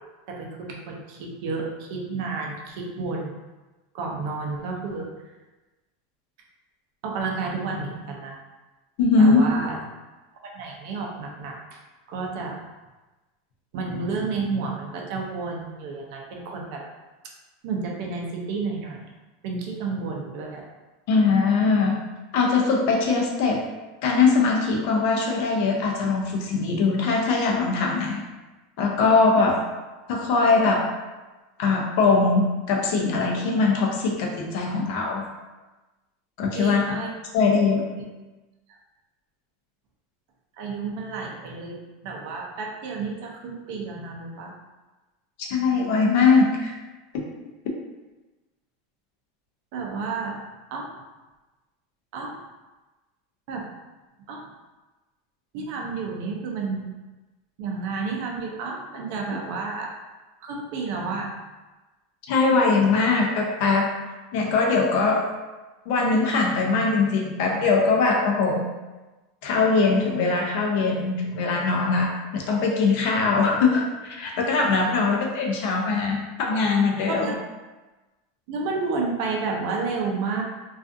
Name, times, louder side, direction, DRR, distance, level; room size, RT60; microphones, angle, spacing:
voice 1, 0.3-3.3 3.9-5.1 7.0-8.4 9.2-9.8 10.4-11.8 12.1-12.6 13.7-16.8 17.6-19.1 19.4-20.6 36.5-37.1 40.6-44.5 49.7-50.4 50.7-50.9 52.1-52.4 53.5-53.7 54.3-54.5 55.5-56.9 57.6-60.0 60.4-61.3 75.1-75.2 77.1-77.4 78.5-80.4, right 4 dB, 50° right, 0 dB, 0.5 m, -31 dB
voice 2, 9.0-9.4 21.1-22.0 22.3-23.7 24.0-28.2 28.8-29.6 30.1-30.9 31.6-35.3 36.4-37.0 37.3-37.9 45.4-46.7 47.1-47.2 62.2-63.9 64.3-65.2 65.9-68.7 69.4-77.3, left 4 dB, 50° left, -1 dB, 0.5 m, -21 dB
2.5 x 2.3 x 2.5 m, 1.2 s
supercardioid pair, 175°, 0 cm